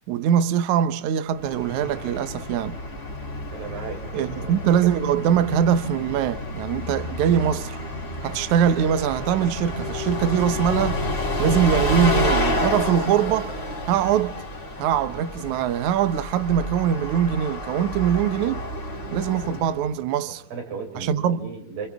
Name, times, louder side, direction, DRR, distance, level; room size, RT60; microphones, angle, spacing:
voice 1, 0.1-2.8 4.1-7.8 8.2-11.0 11.4-13.6 13.9-14.4 14.8-18.7 19.1-20.4 21.0-21.5, right 9 dB, 85° right, 1.6 m, -22 dB
Bus, 1.3-19.9, left 1 dB, 20° left, 2.9 m, -29 dB
voice 2, 3.5-4.6 20.3-21.9, right 5 dB, 70° right, 6.6 m, -35 dB
29.0 x 29.0 x 3.6 m
omnidirectional pair, 4.9 m